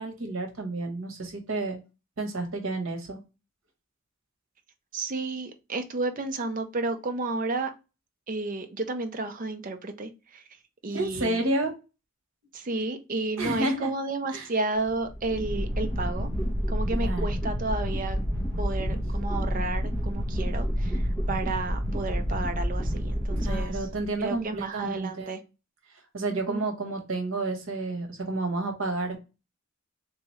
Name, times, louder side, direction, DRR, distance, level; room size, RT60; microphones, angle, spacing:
voice 1, 0.0-1.8 2.2-3.2 10.9-11.7 13.4-13.9 14.3-14.5 17.0-17.3 23.4-25.3 26.1-29.2, right 2 dB, 75° right, 3 dB, 1.1 m, -30 dB
voice 2, 4.9-7.7 8.3-10.4 10.8-11.4 12.5-16.3 16.7-18.2 18.6-23.9 24.2-25.4 26.3-26.6, right 3 dB, 40° right, 7 dB, 0.5 m, -32 dB
sound 1, 14.8-24.3, equal, 5° left, 1.0 m, -29 dB
3.5 x 3.0 x 3.0 m, 0.29 s
head